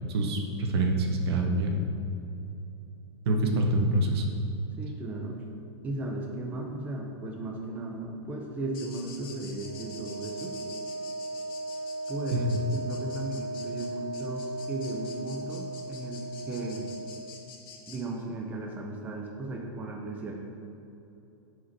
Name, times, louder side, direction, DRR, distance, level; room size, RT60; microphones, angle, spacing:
voice 1, 0.1-1.8 3.2-4.2 12.5-12.6, right 2 dB, 60° right, 2 dB, 1.3 m, -26 dB
voice 2, 4.8-5.4 5.8-10.5 12.1-16.9 17.9-20.4, right 2 dB, 10° right, -1 dB, 0.6 m, -36 dB
sound 1, 8.7-18.0, left 5 dB, 50° left, 1.5 m, -48 dB
Wind instrument woodwind instrument, 9.6-17.4, right 2 dB, 45° right, 1.5 m, -37 dB
10.5 x 5.0 x 4.2 m, 2.9 s
supercardioid pair, 160°, 15 cm